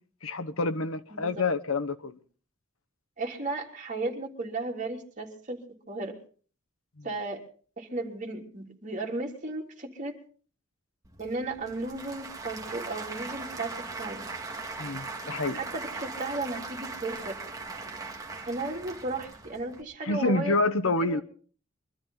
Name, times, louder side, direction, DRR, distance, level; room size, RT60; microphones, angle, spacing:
voice 1, 0.2-2.2 7.0-7.1 14.8-15.6 20.0-21.2, left 2 dB, 70° left, 1.0 m, -28 dB
voice 2, 3.2-5.6 5.9-6.1 7.0-7.4 7.8-10.1 11.2-14.2 15.5-17.4 18.5-20.6 20.8-21.2, right 2 dB, 35° right, 3.4 m, -35 dB
Applause / Crowd, 11.0-19.8, right 3 dB, 15° right, 1.9 m, -39 dB
24.0 x 13.5 x 3.9 m
head